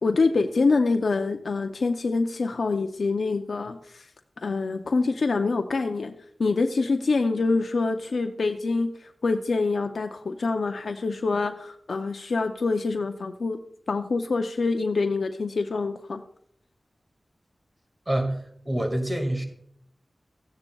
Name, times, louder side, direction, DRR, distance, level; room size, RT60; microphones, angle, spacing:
voice 1, 0.0-4.1 4.4-6.1 6.4-13.6 13.9-16.2, left 3 dB, 80° left, 6 dB, 0.5 m, -25 dB
voice 2, 18.1-19.5, right 1 dB, 30° right, 4 dB, 1.9 m, -27 dB
14.5 x 9.6 x 2.3 m, 0.66 s
cardioid pair, 50°, 0 cm